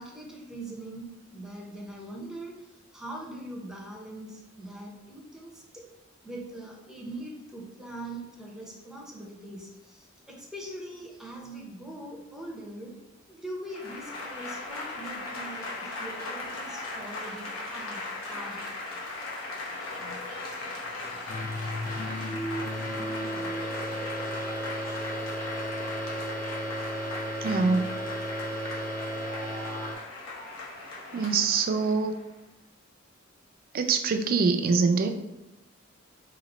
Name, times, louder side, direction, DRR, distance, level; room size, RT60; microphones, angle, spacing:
voice 1, 0.0-6.0 6.2-13.0 13.3-18.7, right 1 dB, ahead, -1 dB, 0.6 m, -42 dB
Applause / Crowd, 13.7-32.2, left 2 dB, 90° left, 1.0 m, -38 dB
sound 1, 21.3-30.0, equal, 40° left, 0.6 m, -34 dB
voice 2, 27.4-27.9 31.1-32.1 33.7-35.1, right 4 dB, 45° right, 6 dB, 0.4 m, -24 dB
3.1 x 2.8 x 4.0 m, 0.96 s
head